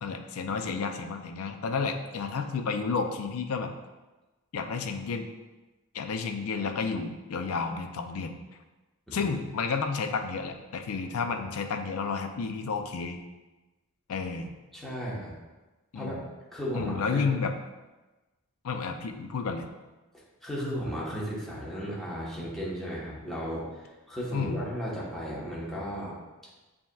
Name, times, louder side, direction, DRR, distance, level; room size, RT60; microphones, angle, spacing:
voice 1, 0.0-3.7 4.5-5.3 5.9-8.4 9.1-13.2 14.1-14.5 15.9-16.2 16.7-17.5 18.6-19.7 24.3-24.6, left 5 dB, 70° left, 6 dB, 0.4 m, -31 dB
voice 2, 14.7-15.4 15.9-16.2 16.5-17.3 20.4-26.1, equal, ahead, -7 dB, 1.0 m, -35 dB
7.2 x 2.9 x 2.3 m, 1.1 s
head